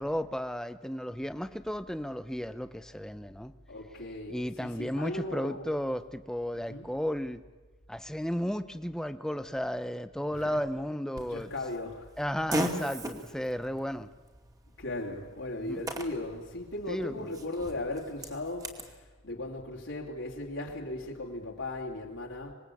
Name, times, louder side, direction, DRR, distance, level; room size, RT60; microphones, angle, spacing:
voice 1, 0.0-3.5 4.3-7.4 7.9-11.5 12.2-14.1 15.6-15.8 16.9-17.2, equal, 5° left, 11 dB, 0.8 m, -34 dB
voice 2, 3.7-5.8 6.5-6.9 10.3-10.6 11.2-12.1 14.8-22.5, left 2 dB, 70° left, -2 dB, 3.0 m, -37 dB
Fart, 11.2-18.9, right 1 dB, 20° right, 2.5 m, -39 dB
25.5 x 21.0 x 8.6 m, 1.3 s
head